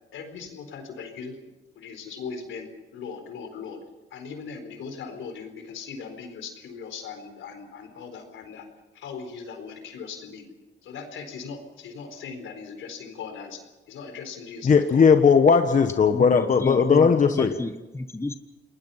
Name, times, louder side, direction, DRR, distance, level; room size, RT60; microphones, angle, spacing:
voice 1, 0.1-1.4 1.8-3.8 4.1-8.6 8.9-10.5 10.8-13.6 13.9-15.1, left 5 dB, 75° left, 7 dB, 4.3 m, -39 dB
voice 2, 14.6-17.5, left 6 dB, 40° left, 7 dB, 1.3 m, -18 dB
voice 3, 16.1-18.4, left 2 dB, 15° left, 9 dB, 1.2 m, -32 dB
29.0 x 20.0 x 5.7 m, 1.1 s
cardioid pair, 90°, 20 cm